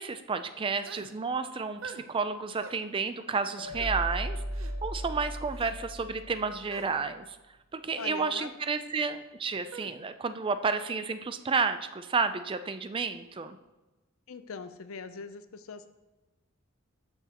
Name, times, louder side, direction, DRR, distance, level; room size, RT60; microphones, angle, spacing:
voice 1, 0.0-4.4 4.8-7.4 7.7-13.6, right 4 dB, 25° right, 11 dB, 0.4 m, -31 dB
sound 1, 0.8-1.1 1.8-2.1 2.5-2.8 3.7-3.9 4.5-4.7 5.5-5.8 6.7-6.9 7.9-8.2 9.7-9.9, right 4 dB, 70° right, 0.7 m, -44 dB
sound 2, 3.6-6.8, equal, 45° left, 1.3 m, -36 dB
voice 2, 8.0-8.5 14.3-15.9, left 4 dB, 80° left, 11 dB, 0.6 m, -41 dB
12.0 x 7.0 x 2.9 m, 1.1 s
head